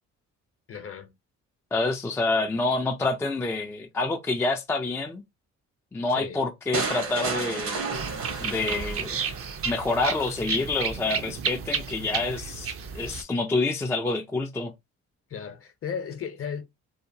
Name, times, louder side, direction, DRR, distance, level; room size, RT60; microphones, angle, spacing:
voice 1, 0.7-1.1 6.1-6.4 15.3-16.6, left 7 dB, 50° left, 0.7 m, -35 dB
voice 2, 1.7-5.2 5.9-7.8 8.4-9.1 9.6-14.7, left 3 dB, 10° left, 0.4 m, -27 dB
sound 1, 6.7-9.7, right 4 dB, 70° right, 1.1 m, -32 dB
sound 2, 7.9-13.2, right 6 dB, 50° right, 0.5 m, -32 dB
2.8 x 2.1 x 2.6 m
cardioid pair, 90°, 30 cm